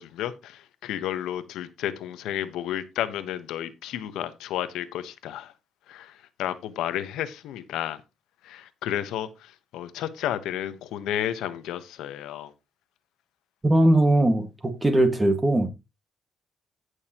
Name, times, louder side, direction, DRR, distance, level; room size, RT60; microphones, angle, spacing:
voice 1, 0.0-5.5 5.9-8.0 8.4-12.5, left 11 dB, 90° left, 1.1 m, -32 dB
voice 2, 13.6-15.7, right 1 dB, 20° right, 1.8 m, -20 dB
16.5 x 6.5 x 3.0 m
cardioid pair, 90°, 0 cm